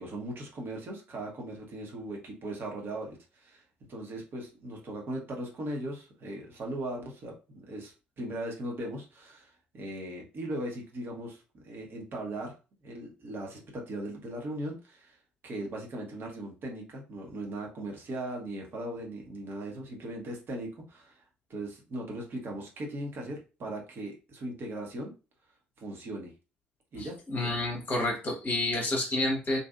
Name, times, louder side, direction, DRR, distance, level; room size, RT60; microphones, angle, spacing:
voice 1, 0.0-3.6 3.9-12.5 12.8-15.2 15.4-21.2 21.5-25.1 25.8-26.3 26.9-27.2, right 1 dB, 40° right, 0 dB, 0.9 m, -38 dB
voice 2, 27.0-29.6, left 2 dB, 35° left, -1 dB, 0.9 m, -29 dB
2.6 x 2.5 x 2.3 m, 0.32 s
figure-of-eight pair, 50°, 6 cm